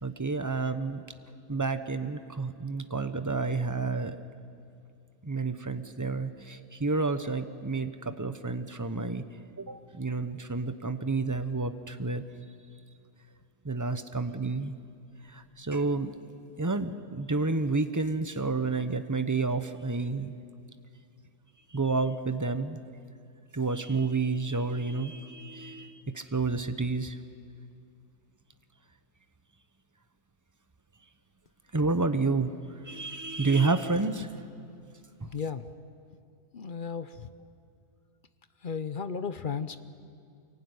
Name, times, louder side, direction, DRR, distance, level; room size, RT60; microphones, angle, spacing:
voice 1, 0.0-1.0 1.5-4.2 5.2-9.2 9.6-12.2 13.6-14.7 15.3-16.3 16.6-20.3 21.7-22.8 23.5-27.2 31.7-32.5 32.8-34.3 35.2-35.3, right 3 dB, 20° right, 10 dB, 0.5 m, -30 dB
voice 2, 35.3-35.6 36.5-37.3 38.6-39.8, left 6 dB, 45° left, 11 dB, 0.7 m, -34 dB
24.5 x 22.0 x 9.6 m, 2.4 s
omnidirectional pair, 1.7 m